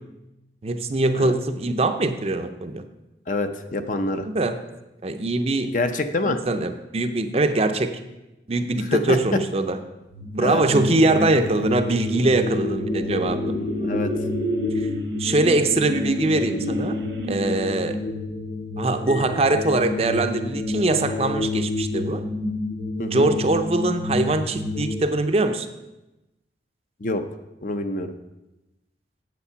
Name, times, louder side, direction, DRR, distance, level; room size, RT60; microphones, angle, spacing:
voice 1, 0.6-2.8 4.3-4.6 5.0-5.7 6.3-8.0 8.5-9.8 10.3-13.5 14.8-14.9 15.2-16.9 17.3-18.0 18.8-22.2 23.0-25.7, right 2 dB, 35° right, 8 dB, 0.5 m, -22 dB
voice 2, 3.3-4.3 5.7-6.4 8.9-9.4 10.4-10.6 13.8-14.1 23.0-23.3 27.0-27.2 27.6-28.1, left 2 dB, 45° left, 8 dB, 0.6 m, -26 dB
sound 1, 10.1-24.9, left 2 dB, 75° left, 2.6 m, -29 dB
sound 2, 11.3-17.8, equal, 80° right, 1.1 m, -31 dB
8.3 x 7.6 x 5.6 m, 0.99 s
head